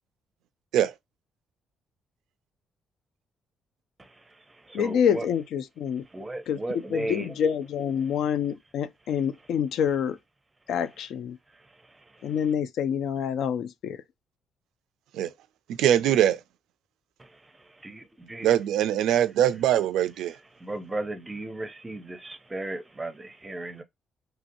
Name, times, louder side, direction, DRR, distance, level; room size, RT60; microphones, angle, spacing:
voice 1, 4.0-5.3 6.0-7.4 8.0-8.3 10.8-11.1 11.5-12.5 17.2-18.6 20.2-23.8, right 2 dB, 15° right, 0.5 m, -37 dB
voice 2, 4.7-6.0 6.5-6.6 6.9-10.2 10.7-11.4 12.2-14.0, left 8 dB, 70° left, 0.4 m, -27 dB
voice 3, 15.8-16.4 18.4-20.3, right 11 dB, 85° right, 0.3 m, -22 dB
3.1 x 2.7 x 2.5 m
cardioid pair, 135°, 0 cm